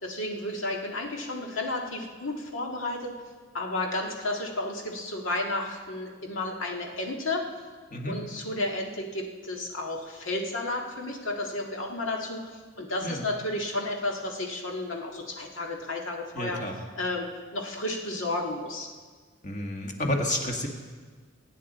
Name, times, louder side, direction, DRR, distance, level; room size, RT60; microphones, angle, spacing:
voice 1, 0.0-3.1 3.5-7.5 8.0-12.5 12.8-16.6 16.9-17.3 17.5-18.9, left 2 dB, 85° left, 1 dB, 1.9 m, -32 dB
voice 2, 16.3-16.8 19.4-20.7, left 1 dB, 40° left, 2 dB, 1.7 m, -30 dB
22.5 x 9.3 x 4.2 m, 1.5 s
head